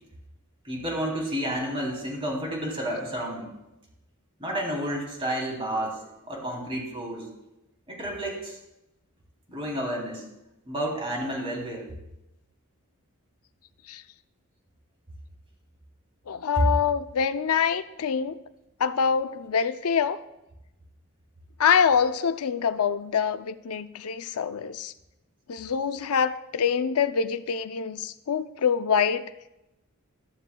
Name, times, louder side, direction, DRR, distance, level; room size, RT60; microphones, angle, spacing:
voice 1, 0.6-3.5 4.4-6.0 6.3-7.3 7.9-8.6 9.5-10.2 10.7-11.9, right 1 dB, 25° right, -1 dB, 3.2 m, -31 dB
voice 2, 16.3-18.4 18.8-20.2 21.6-24.9 25.5-29.3, left 7 dB, 85° left, 11 dB, 0.5 m, -25 dB
14.0 x 13.0 x 2.3 m, 0.92 s
head